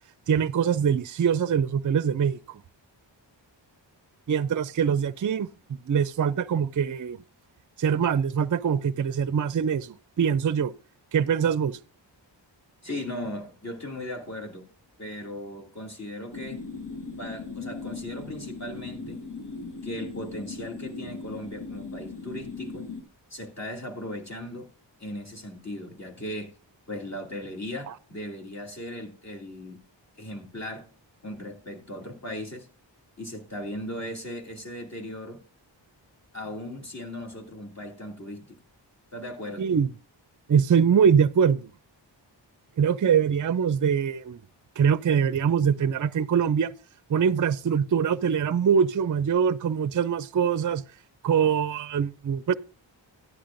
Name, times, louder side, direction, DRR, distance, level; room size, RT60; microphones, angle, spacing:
voice 1, 0.3-2.6 4.3-7.2 7.8-10.7 11.1-11.8 27.9-28.0 39.6-39.9 40.5-41.7 42.8-44.4 44.8-46.7 47.1-50.8 51.2-52.5, right 7 dB, 45° right, 0.4 m, -23 dB
voice 2, 12.8-14.7 15.0-16.6 17.2-19.2 19.8-22.9 23.3-24.7 25.0-26.5 26.9-29.8 30.2-30.9 31.2-32.7 33.2-35.4 36.3-38.6 39.1-39.7, left 1 dB, 35° left, 2.7 m, -37 dB
sound 1, 16.3-23.0, left 4 dB, 60° left, 1.5 m, -38 dB
13.5 x 10.0 x 2.6 m
wide cardioid pair, 60°, 45 cm